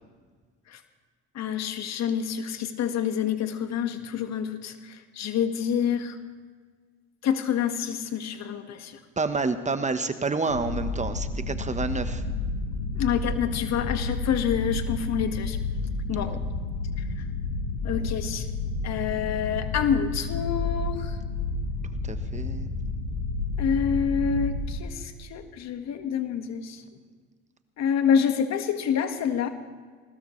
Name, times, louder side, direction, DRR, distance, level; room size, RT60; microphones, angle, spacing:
voice 1, 1.3-6.2 7.2-9.0 12.9-15.6 16.1-16.3 17.2-17.3 17.8-18.5 18.8-21.2 23.6-26.8 27.8-29.5, left 8 dB, 60° left, 7 dB, 1.8 m, -27 dB
voice 2, 9.2-12.2 16.1-16.4 22.1-22.7, right 4 dB, 25° right, 10 dB, 1.2 m, -29 dB
sound 1, 10.5-24.8, left 3 dB, 90° left, 1.5 m, -30 dB
20.0 x 19.5 x 3.3 m, 1.5 s
hypercardioid pair, 65°, 31 cm